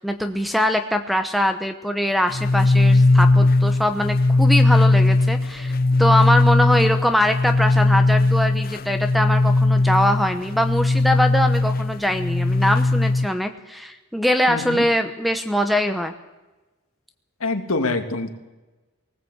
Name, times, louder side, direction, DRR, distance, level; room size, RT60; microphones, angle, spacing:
voice 1, 0.0-16.1, equal, ahead, 8 dB, 0.9 m, -22 dB
sound 1, 2.3-13.3, left 2 dB, 40° left, 0.6 m, -18 dB
voice 2, 14.5-14.8 17.4-18.4, left 3 dB, 70° left, 6 dB, 2.1 m, -25 dB
19.0 x 19.0 x 8.1 m, 1.1 s
head